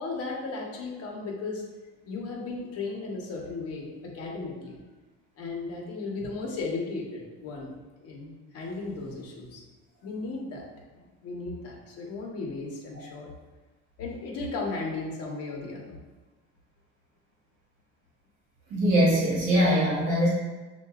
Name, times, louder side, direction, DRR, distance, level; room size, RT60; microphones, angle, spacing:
voice 1, 0.0-1.6 2.1-4.8 5.4-7.7 8.0-9.6 10.0-10.7 10.9-13.3 14.0-16.0, left 3 dB, 55° left, -1 dB, 1.0 m, -35 dB
voice 2, 18.7-20.3, equal, 75° right, -5 dB, 1.2 m, -22 dB
6.6 x 2.6 x 2.4 m, 1.2 s
cardioid pair, 145°, 30 cm